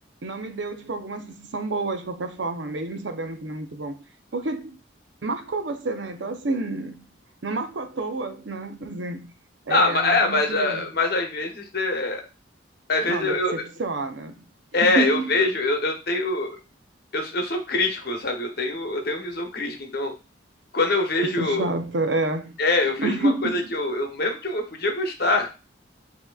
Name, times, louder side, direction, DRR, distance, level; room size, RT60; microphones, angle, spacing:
voice 1, 0.2-4.0 4.3-4.8 5.2-7.1 7.4-9.3 9.7-10.9 13.1-14.4 14.8-15.2 21.2-22.5 23.0-23.7, right 2 dB, 70° right, 0.6 m, -29 dB
voice 2, 9.7-12.2 12.9-13.5 14.7-16.6 17.1-20.1 20.7-21.7 22.6-25.5, left 2 dB, 55° left, 0.9 m, -24 dB
7.7 x 2.8 x 2.3 m
head